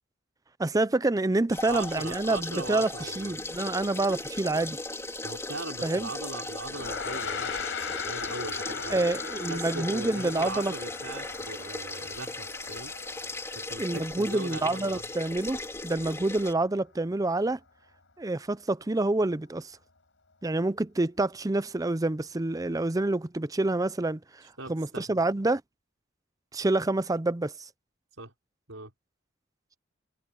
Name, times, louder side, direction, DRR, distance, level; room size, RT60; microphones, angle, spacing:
voice 1, 0.6-4.8 5.8-6.1 8.9-10.7 13.8-17.6 18.2-19.8 20.4-24.4 24.7-25.6 26.5-27.5, right 2 dB, 15° right, 0.5 m, -27 dB
sound 1, 1.5-16.5, left 2 dB, 15° left, 3.6 m, -37 dB
voice 2, 1.7-3.3 5.2-9.2 9.5-12.9 13.5-15.1 24.4-25.2 28.2-28.3 28.7-28.9, right 3 dB, 80° right, 5.5 m, -40 dB
Gong, 6.7-16.2, left 6 dB, 60° left, 6.7 m, -39 dB
head